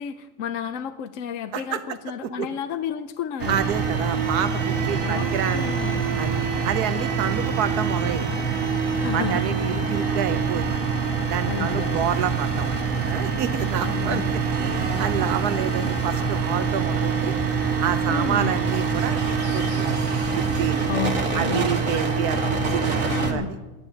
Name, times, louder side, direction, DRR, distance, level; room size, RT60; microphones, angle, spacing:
voice 1, 0.0-3.6 5.0-6.1 9.0-9.5 11.5-12.1 13.8-14.3 15.4-15.5 18.1-18.6 20.9-21.7 23.1-23.6, left 8 dB, 65° left, 9 dB, 1.0 m, -32 dB
sound 1, 3.4-23.3, right 5 dB, 60° right, 2.0 m, -25 dB
voice 2, 3.5-5.6 6.2-6.4 6.6-8.3 9.1-10.8 11.3-12.7 13.1-14.2 14.6-17.3 17.8-19.8 20.3-20.9 21.3-23.6, right 9 dB, 80° right, 12 dB, 1.4 m, -28 dB
10.0 x 9.7 x 10.0 m, 1.1 s
omnidirectional pair, 1.6 m